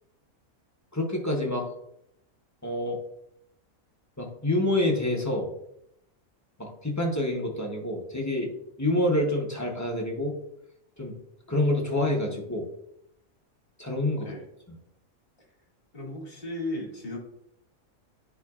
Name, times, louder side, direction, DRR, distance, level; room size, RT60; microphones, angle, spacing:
voice 1, 0.9-1.7 2.6-3.0 4.2-5.5 6.6-8.5 8.8-10.4 11.0-11.2 11.5-12.7 13.8-14.3, left 1 dB, 15° left, -1 dB, 0.7 m, -27 dB
voice 2, 15.9-17.2, left 1 dB, 40° left, -2 dB, 2.2 m, -35 dB
10.0 x 4.4 x 2.4 m, 0.78 s
omnidirectional pair, 1.5 m